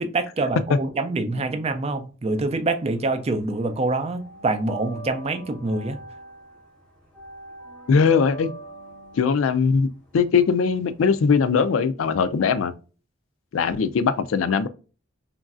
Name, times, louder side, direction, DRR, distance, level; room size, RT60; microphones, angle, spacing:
voice 1, 0.0-6.0, right 2 dB, 30° right, 0.4 m, -26 dB
sound 1, 2.7-3.5 3.7-11.6, right 2 dB, 5° left, 0.8 m, -43 dB
voice 2, 7.9-8.5 9.2-9.9 10.1-12.7 13.5-14.7, left 5 dB, 85° left, 0.4 m, -20 dB
3.0 x 2.5 x 2.3 m
head